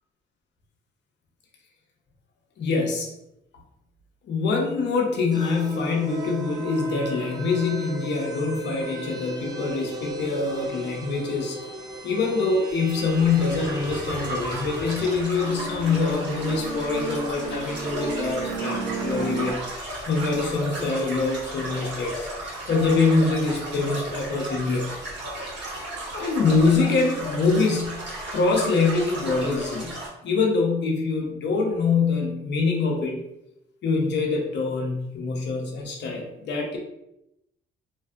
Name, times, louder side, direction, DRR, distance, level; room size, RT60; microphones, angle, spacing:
voice 1, 2.6-3.1 4.2-11.6 12.0-24.9 26.1-28.1 28.3-30.0 30.2-33.2 33.8-36.8, left 4 dB, 60° left, 0 dB, 0.7 m, -24 dB
sound 1, 5.3-19.5, right 2 dB, 20° right, 0.4 m, -35 dB
sound 2, 12.9-30.1, right 1 dB, 65° right, 1.2 m, -35 dB
2.5 x 2.4 x 2.4 m, 0.83 s
cardioid pair, 90°, 20 cm